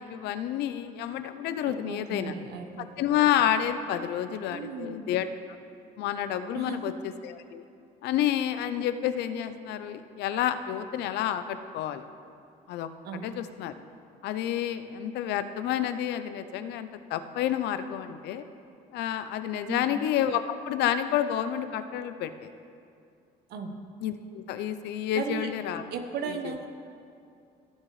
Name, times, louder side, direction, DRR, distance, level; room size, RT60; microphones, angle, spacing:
voice 1, 0.0-2.3 3.0-5.3 6.0-7.6 8.0-12.0 12.7-12.9 13.2-13.7 14.2-18.4 18.9-22.5 24.0-25.8 26.4-26.5, left 10 dB, 80° left, 11 dB, 0.6 m, -29 dB
voice 2, 1.6-3.1 4.5-5.1 6.5-7.0 13.0-13.3 19.7-20.0 23.5-23.8 25.1-25.5 25.9-26.7, right 5 dB, 70° right, 6 dB, 1.0 m, -36 dB
18.0 x 7.7 x 3.2 m, 2.5 s
cardioid pair, 110°, 17 cm